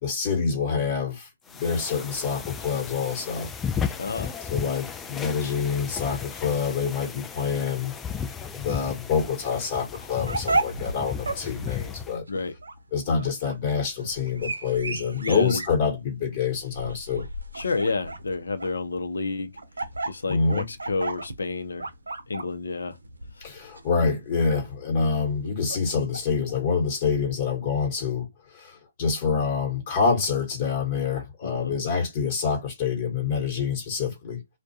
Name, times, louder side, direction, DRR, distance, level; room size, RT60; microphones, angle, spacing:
voice 1, 0.0-3.5 4.5-7.9 8.6-12.2 12.9-17.2 20.3-20.6 23.4-34.4, left 5 dB, 40° left, 1.1 m, -26 dB
sound 1, 1.5-12.2, left 7 dB, 10° left, 0.3 m, -35 dB
voice 2, 4.0-4.3 12.3-12.5 15.2-15.6 17.5-19.5 20.1-21.9 22.3-23.0 23.4-23.5 31.4-31.7, left 4 dB, 80° left, 0.5 m, -30 dB
sound 2, 9.9-26.6, right 2 dB, 90° right, 0.6 m, -34 dB
2.3 x 2.1 x 2.7 m
hypercardioid pair, 140°, 0 cm